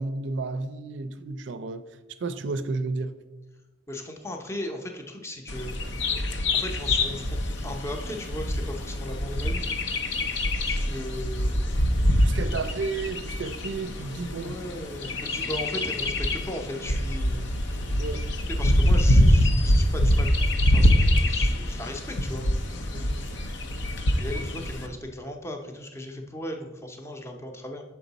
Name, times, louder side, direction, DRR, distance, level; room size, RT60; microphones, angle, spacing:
voice 1, 0.0-1.8 2.2-3.1 12.1-14.6 18.0-18.3 22.9-23.3, right 3 dB, 65° right, 0.4 m, -32 dB
voice 2, 3.9-5.7 6.5-9.7 10.6-11.9 14.3-17.5 18.5-22.5 24.2-27.8, left 1 dB, 15° left, 0.6 m, -37 dB
Bird vocalization bird call bird song, 5.5-24.9, left 1 dB, 65° left, 0.5 m, -25 dB
6.2 x 4.6 x 4.0 m
head